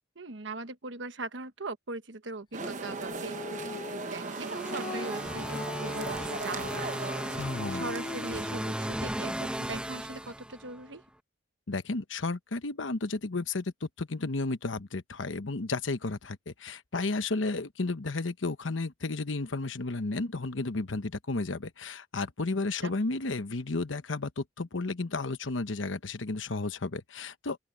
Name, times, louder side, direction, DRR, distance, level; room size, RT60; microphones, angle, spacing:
voice 1, 0.1-11.0 22.8-22.9, right 3 dB, 70° right, 1.2 m, -40 dB
sound 1, 2.5-9.0, right 4 dB, 40° right, 0.9 m, -39 dB
Female singing, 2.6-9.1, left 3 dB, 25° left, 0.4 m, -41 dB
sound 2, 4.0-10.9, right 1 dB, 5° right, 1.0 m, -37 dB
voice 2, 7.4-7.9 11.7-27.6, left 3 dB, 90° left, 1.0 m, -33 dB
open air
head